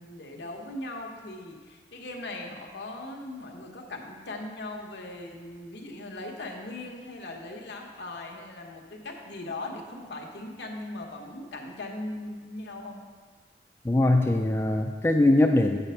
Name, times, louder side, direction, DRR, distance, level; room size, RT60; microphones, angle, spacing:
voice 1, 0.0-13.0, left 2 dB, 70° left, 1 dB, 1.0 m, -39 dB
voice 2, 13.8-15.8, left 1 dB, 15° left, 2 dB, 0.3 m, -21 dB
8.0 x 4.1 x 5.6 m, 1.5 s
head